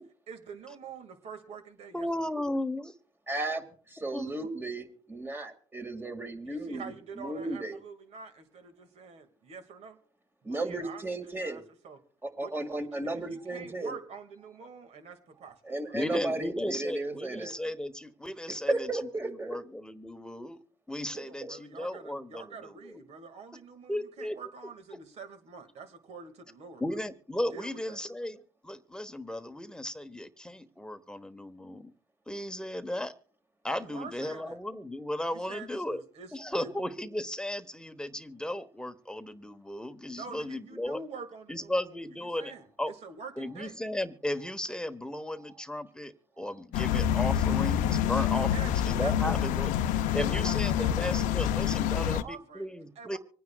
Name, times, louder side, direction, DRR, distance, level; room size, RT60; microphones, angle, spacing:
voice 1, 0.3-2.3 6.4-10.0 10.4-12.0 12.4-16.0 21.2-27.0 27.5-28.0 33.8-34.6 35.3-36.9 40.2-43.8 48.5-48.7 49.0-52.7 53.0-53.2, right 5 dB, 55° right, 9 dB, 2.0 m, -46 dB
voice 2, 1.9-2.9 4.1-4.2 15.9-18.9 19.2-20.6 20.9-23.0 23.9-24.4 26.8-28.4 28.6-31.9 32.3-33.1 33.6-36.0 36.3-41.0 41.5-42.5 42.8-42.9 43.4-49.7 50.1-53.2, left 1 dB, 5° left, 9 dB, 1.1 m, -35 dB
voice 3, 3.3-3.6 3.9-7.8 10.4-11.6 12.2-14.0 15.6-17.6 18.5-19.6 21.1-21.5 42.3-42.6 43.4-43.5 44.4-44.5 45.4-45.6 46.4-46.6, right 2 dB, 15° right, 7 dB, 2.0 m, -35 dB
sound 1, 46.7-52.2, left 10 dB, 75° left, 0.7 m, -27 dB
25.5 x 9.4 x 2.3 m, 0.43 s
supercardioid pair, 80°, 13 cm